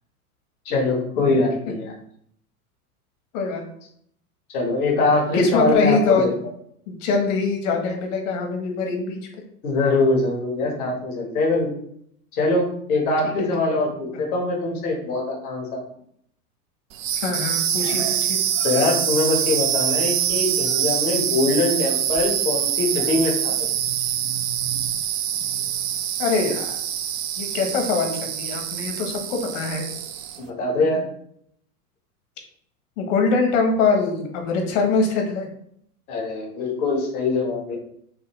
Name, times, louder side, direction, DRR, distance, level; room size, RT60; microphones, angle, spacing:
voice 1, 0.6-1.9 4.5-6.3 9.6-11.7 12.3-15.8 18.6-23.5 30.4-31.0 36.1-37.7, left 2 dB, 75° left, -2 dB, 1.6 m, -22 dB
voice 2, 5.4-6.3 6.9-9.2 17.2-18.4 26.2-26.8 27.4-29.8 33.0-35.5, left 4 dB, 55° left, 3 dB, 1.3 m, -23 dB
sound 1, 16.9-30.4, right 10 dB, 60° right, 0.6 m, -25 dB
5.5 x 2.2 x 3.2 m, 0.68 s
hypercardioid pair, 105°, 44 cm